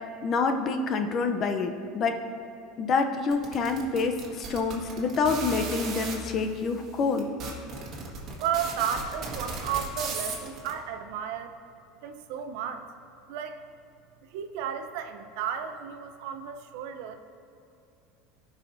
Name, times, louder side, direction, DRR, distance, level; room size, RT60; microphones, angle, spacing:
voice 1, 0.2-2.2 2.8-7.3, left 4 dB, 35° left, 6 dB, 0.6 m, -27 dB
sound 1, 3.3-6.2 6.8-6.9 7.2-10.7, right 4 dB, 40° right, 1.8 m, -35 dB
voice 2, 8.4-11.5 12.0-12.9 13.3-13.6 14.3-17.2, right 8 dB, 70° right, 7 dB, 0.6 m, -33 dB
15.5 x 5.7 x 2.7 m, 2.8 s
supercardioid pair, 130°, 0 cm